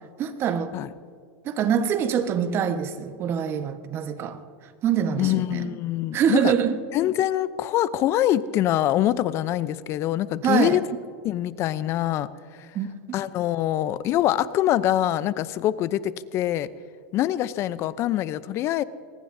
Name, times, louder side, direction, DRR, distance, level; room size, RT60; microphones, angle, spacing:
voice 1, 0.2-0.7 1.4-5.8 6.1-6.8 10.4-10.8 12.7-12.9, right 8 dB, 40° right, 1.3 m, -25 dB
voice 2, 5.2-6.5 6.9-10.8 11.2-12.3 13.1-16.7 17.1-18.8, left 13 dB, 45° left, 0.7 m, -24 dB
23.0 x 19.5 x 2.7 m
hypercardioid pair, 110°, 6 cm